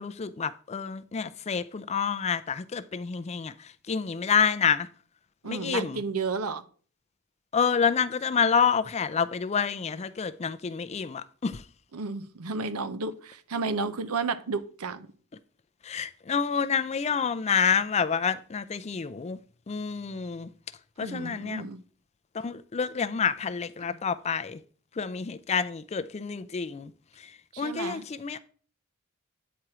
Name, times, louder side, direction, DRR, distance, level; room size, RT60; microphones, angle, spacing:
voice 1, 0.0-3.5 3.9-4.9 5.5-6.0 7.5-11.6 15.9-19.4 19.7-20.5 21.0-21.6 22.3-24.6 25.0-26.9 27.6-28.4, left 6 dB, 30° left, 0.4 m, -28 dB
voice 2, 5.4-6.6 11.9-15.1 21.0-21.8 27.5-28.0, right 4 dB, 85° right, 0.7 m, -32 dB
9.2 x 4.4 x 4.8 m
head